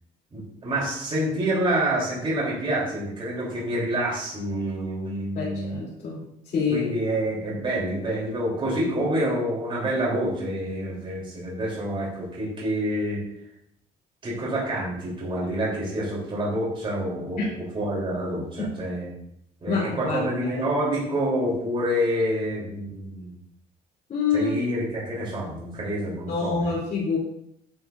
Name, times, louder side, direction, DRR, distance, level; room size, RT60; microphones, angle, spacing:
voice 1, 0.3-5.8 6.7-13.2 14.2-19.1 19.6-23.3 24.3-26.8, right 1 dB, 30° right, -5 dB, 3.6 m, -27 dB
voice 2, 5.3-6.2 6.5-6.9 17.4-17.5 18.6-18.7 19.7-20.5 24.1-24.5 26.3-27.2, left 5 dB, 50° left, -7 dB, 3.3 m, -26 dB
9.7 x 8.2 x 2.7 m, 0.74 s
cardioid pair, 110°, 17 cm